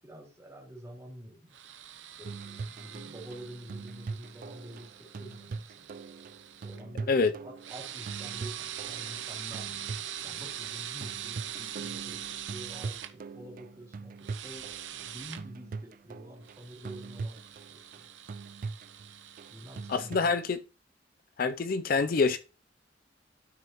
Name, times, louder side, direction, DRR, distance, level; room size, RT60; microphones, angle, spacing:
voice 1, 0.0-1.6 2.2-5.9 6.6-9.8 10.2-14.1 14.4-18.1 19.5-20.4, right 1 dB, 15° right, 3.1 m, -48 dB
sound 1, 1.5-6.8 7.6-13.1 14.2-15.4 16.4-20.1, right 10 dB, 90° right, 0.7 m, -43 dB
sound 2, 2.2-20.4, right 4 dB, 50° right, 0.3 m, -42 dB
voice 2, 19.9-20.6 21.4-22.4, left 4 dB, 50° left, 0.4 m, -26 dB
12.5 x 6.1 x 3.0 m
head